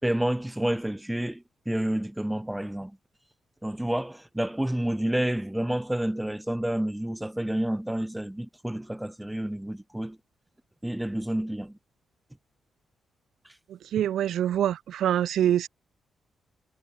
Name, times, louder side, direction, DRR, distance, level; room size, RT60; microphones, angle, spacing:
voice 1, 0.0-3.0 3.6-10.2 10.8-11.8 14.0-14.1, right 1 dB, 5° right, 5.7 m, -29 dB
voice 2, 13.9-15.7, right 11 dB, 80° right, 0.4 m, -25 dB
cardioid pair, 75°, 0 cm